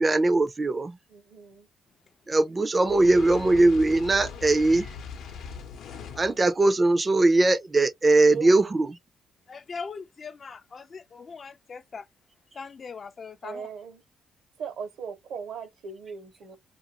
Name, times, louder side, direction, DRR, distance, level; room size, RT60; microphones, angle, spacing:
voice 1, 0.0-1.0 2.3-4.9 6.2-9.0, right 2 dB, 25° right, 0.4 m, -21 dB
voice 2, 1.1-1.7 8.2-8.7 13.4-14.0 14.6-16.6, right 6 dB, 75° right, 0.9 m, -38 dB
Fire, 2.7-6.4, left 6 dB, 75° left, 0.7 m, -40 dB
voice 3, 9.5-12.1 12.5-13.7, left 5 dB, 40° left, 0.4 m, -40 dB
2.5 x 2.3 x 2.8 m
cardioid pair, 90°, 0 cm